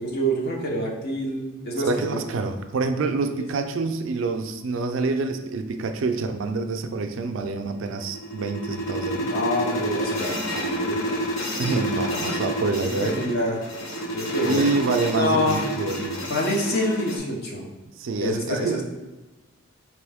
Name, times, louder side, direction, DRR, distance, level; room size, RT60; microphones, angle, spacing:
voice 1, 0.0-2.2 3.3-3.4 9.1-11.2 12.8-13.6 14.1-14.7 15.2-15.6 16.3-17.7 18.2-18.8, equal, 50° left, -1 dB, 0.8 m, -26 dB
voice 2, 1.8-9.3 11.6-13.2 14.4-16.2 18.0-18.8, right 3 dB, 65° right, 6 dB, 0.4 m, -27 dB
sound 1, 7.8-17.2, equal, 85° left, 0.8 m, -29 dB
4.1 x 3.0 x 3.4 m, 1.1 s
head